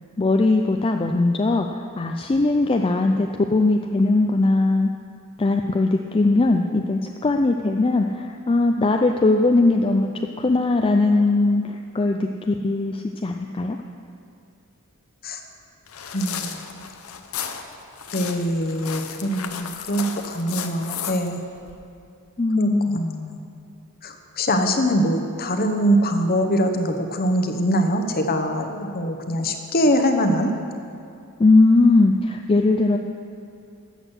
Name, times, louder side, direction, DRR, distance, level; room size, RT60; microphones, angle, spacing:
voice 1, 0.2-4.9 5.4-10.1 10.4-13.8 22.4-23.0 31.4-33.0, left 2 dB, 25° left, 3 dB, 0.4 m, -20 dB
sound 1, 15.9-21.7, left 7 dB, 70° left, 0.8 m, -34 dB
voice 2, 16.1-16.6 18.1-21.4 22.6-23.4 24.0-30.5, equal, 45° left, 6 dB, 1.0 m, -23 dB
13.0 x 8.1 x 6.3 m, 2.4 s
head